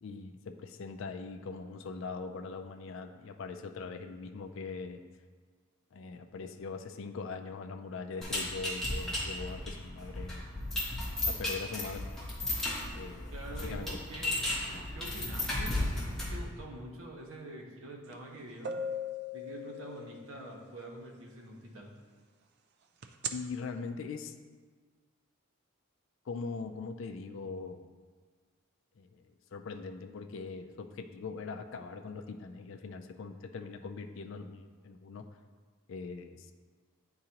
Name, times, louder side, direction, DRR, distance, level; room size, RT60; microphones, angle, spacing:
voice 1, 0.0-5.0 5.9-10.4 11.3-12.1 12.9-13.9 23.3-24.3 26.3-27.8 29.0-35.2 35.9-36.5, left 4 dB, 60° left, 6 dB, 0.4 m, -41 dB
sound 1, 8.2-16.5, left 1 dB, ahead, 1.0 m, -35 dB
voice 2, 13.3-14.3 14.7-18.8 19.3-21.9, right 1 dB, 65° right, 0 dB, 0.9 m, -46 dB
sound 2, 18.1-18.2 18.6-20.4 23.0-23.3, left 2 dB, 50° right, 0.3 m, -37 dB
9.0 x 3.8 x 2.9 m, 1.5 s
head